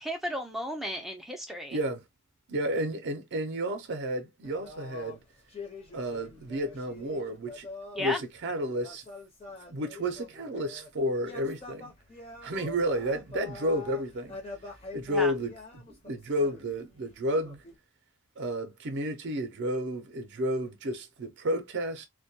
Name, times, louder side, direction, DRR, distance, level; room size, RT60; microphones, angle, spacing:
voice 1, 0.0-1.8 8.0-8.2 15.1-15.3, equal, ahead, 0.4 m, -34 dB
voice 2, 1.7-2.0 2.5-5.2 5.9-7.7 8.0-9.0 9.7-11.9 12.4-14.4 14.9-17.6 18.4-22.0, equal, 55° right, 0.5 m, -31 dB
sound 1, 4.4-8.1 8.5-10.9 11.2-17.8, left 3 dB, 30° left, 0.7 m, -46 dB
2.2 x 2.2 x 2.7 m
head